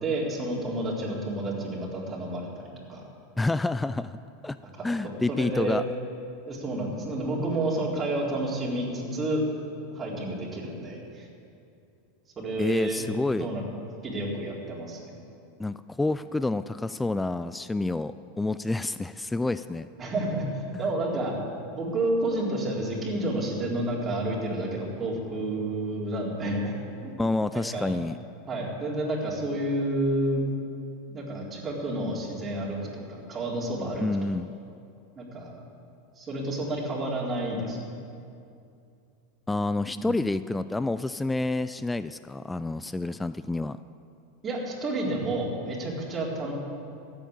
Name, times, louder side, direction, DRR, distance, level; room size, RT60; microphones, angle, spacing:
voice 1, 0.0-2.6 2.9-3.0 5.0-5.8 6.5-9.4 9.9-11.3 12.4-13.0 13.4-13.6 14.0-15.1 20.0-21.3 21.7-26.7 27.0-27.1 27.5-27.9 28.5-30.4 31.1-34.0 35.2-35.6 36.2-37.8 39.9-40.1 44.4-46.5, right 1 dB, 25° right, -4 dB, 4.0 m, -30 dB
voice 2, 3.4-4.2 4.4-4.6 4.8-5.8 12.6-13.5 15.6-19.9 27.2-28.2 34.0-34.5 39.5-43.8, left 2 dB, 10° left, 13 dB, 0.4 m, -28 dB
14.5 x 8.7 x 8.8 m, 2.5 s
hypercardioid pair, 90°, 0 cm